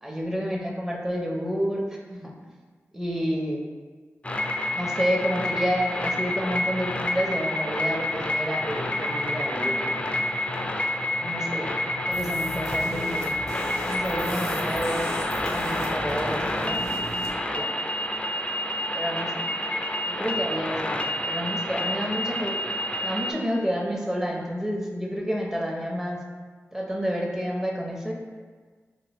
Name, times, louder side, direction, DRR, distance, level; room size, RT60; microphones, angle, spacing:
voice 1, 0.0-2.5 2.9-3.6 4.7-10.0 11.2-11.7 12.0-13.4 13.8-15.1 15.4-16.8 17.5-17.7 18.9-19.6 20.0-22.6 23.0-26.2 26.7-28.1, equal, 10° right, -1 dB, 0.7 m, -30 dB
sound 1, 4.2-23.3, left 1 dB, 20° left, 0.4 m, -28 dB
sound 2, 12.1-17.3, equal, 80° right, 0.8 m, -37 dB
4.3 x 2.5 x 3.1 m, 1.5 s
cardioid pair, 45°, 5 cm